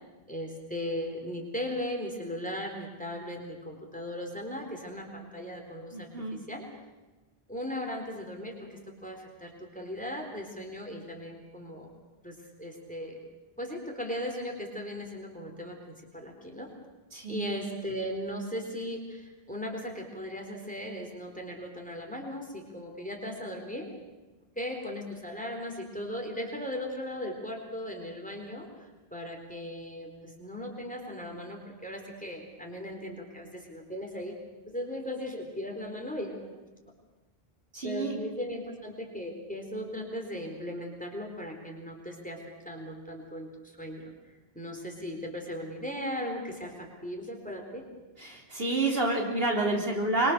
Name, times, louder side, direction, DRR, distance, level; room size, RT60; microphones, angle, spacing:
voice 1, 0.3-6.6 7.5-11.9 12.2-13.2 13.6-16.7 17.3-23.9 24.6-28.7 29.1-34.3 34.7-36.6 37.8-42.4 42.6-44.1 44.5-47.9, left 1 dB, 10° left, 2 dB, 3.9 m, -37 dB
voice 2, 5.9-6.4 17.1-17.5 37.7-38.2 48.2-50.3, right 2 dB, 70° right, 0 dB, 3.8 m, -29 dB
25.0 x 23.5 x 6.8 m, 1.2 s
omnidirectional pair, 1.0 m